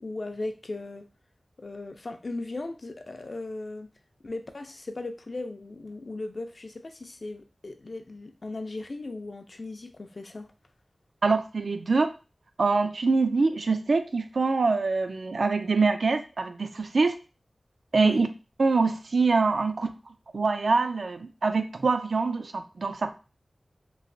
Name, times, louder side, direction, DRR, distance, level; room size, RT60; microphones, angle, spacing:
voice 1, 0.0-1.1 1.6-3.9 4.2-10.5 18.0-18.3, left 2 dB, 50° left, 6 dB, 0.4 m, -37 dB
voice 2, 11.2-12.1 12.6-17.1 17.9-18.3 18.6-23.1, right 4 dB, 75° right, 8 dB, 0.3 m, -24 dB
3.1 x 2.7 x 2.6 m, 0.33 s
wide cardioid pair, 85°, 0 cm